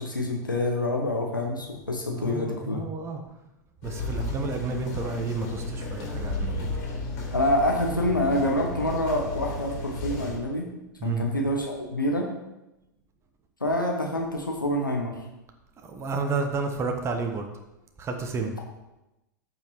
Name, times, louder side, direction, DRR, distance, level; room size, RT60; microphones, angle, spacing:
voice 1, 0.0-2.8 7.3-10.7 11.0-12.3 13.6-15.2, left 1 dB, 90° left, 0 dB, 1.2 m, -26 dB
voice 2, 2.1-3.2 3.8-6.7 11.0-11.3 15.8-17.4 18.0-18.5, right 4 dB, 25° right, 4 dB, 1.1 m, -31 dB
sound 1, 3.8-10.4, left 2 dB, 50° left, 3.3 m, -33 dB
13.5 x 5.6 x 3.1 m, 0.96 s
figure-of-eight pair, 90°, 11 cm